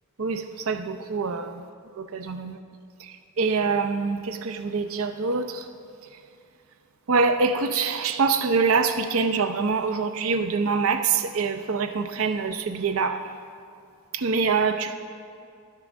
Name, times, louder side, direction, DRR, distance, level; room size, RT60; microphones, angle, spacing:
voice 1, 0.2-1.5 2.1-2.6 3.4-5.4 7.1-13.2 14.1-14.9, right 4 dB, 65° right, 8 dB, 0.6 m, -24 dB
12.0 x 7.6 x 6.1 m, 2.3 s
head